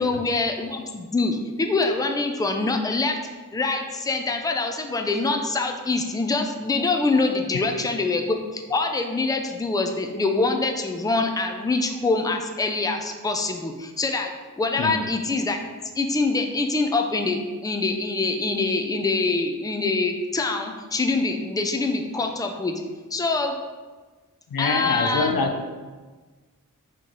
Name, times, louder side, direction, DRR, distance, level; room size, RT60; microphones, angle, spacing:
voice 1, 0.0-3.2 3.5-14.3 14.6-15.6 16.0-22.8 23.1-23.6 24.6-25.3, left 3 dB, 10° left, 4 dB, 0.4 m, -24 dB
voice 2, 24.5-25.7, left 4 dB, 90° left, 4 dB, 0.5 m, -24 dB
4.4 x 3.0 x 3.8 m, 1.3 s
wide cardioid pair, 65°, 34 cm